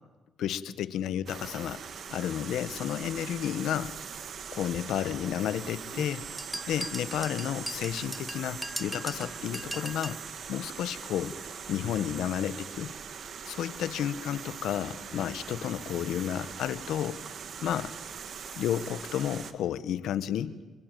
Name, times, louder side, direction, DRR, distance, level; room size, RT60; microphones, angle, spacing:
voice 1, 0.4-1.8 2.1-3.9 4.5-6.2 6.7-10.2 10.5-11.4 11.7-12.9 13.5-17.2 17.6-17.9 18.6-20.5, left 10 dB, 80° left, 15 dB, 1.2 m, -31 dB
sound 1, 1.3-19.5, right 7 dB, 60° right, 1.9 m, -41 dB
sound 2, 6.4-10.2, equal, 5° right, 0.9 m, -39 dB
29.5 x 22.0 x 9.1 m, 1.3 s
cardioid pair, 90°, 0 cm